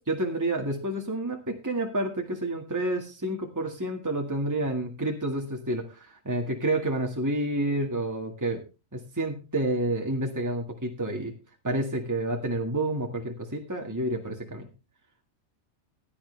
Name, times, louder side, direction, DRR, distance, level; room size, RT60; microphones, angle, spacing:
voice 1, 0.0-8.6 8.9-11.3 11.6-14.7, right 1 dB, 15° right, 1 dB, 1.8 m, -29 dB
16.0 x 10.5 x 3.3 m, 0.29 s
omnidirectional pair, 1.4 m